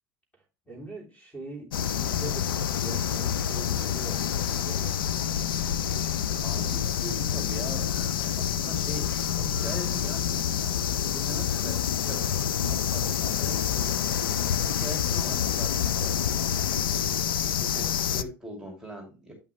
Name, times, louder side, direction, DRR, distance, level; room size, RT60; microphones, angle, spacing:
voice 1, 0.3-5.0, right 3 dB, 10° left, 3.0 m, -43 dB
sound 1, 1.7-18.2, left 9 dB, 85° left, 0.4 m, -27 dB
voice 2, 6.4-12.3 12.6-19.3, right 1 dB, 5° right, 2.6 m, -42 dB
8.6 x 5.8 x 3.1 m
hypercardioid pair, 85°, 11 cm